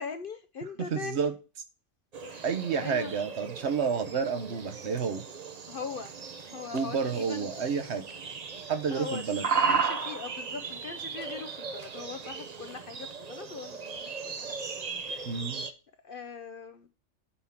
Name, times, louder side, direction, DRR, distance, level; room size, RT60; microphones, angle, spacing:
voice 1, 0.0-1.3 2.2-2.5 2.8-3.1 5.7-6.1 6.5-7.5 8.9-14.7 15.1-15.4 16.0-16.9, left 5 dB, 55° left, 0.7 m, -41 dB
voice 2, 0.9-1.3 2.4-5.2 6.7-8.0 8.7-9.8 15.3-15.6, right 6 dB, 60° right, 1.1 m, -30 dB
sound 1, 2.1-15.7, right 5 dB, 40° right, 0.6 m, -36 dB
8.4 x 3.6 x 5.8 m
omnidirectional pair, 1.3 m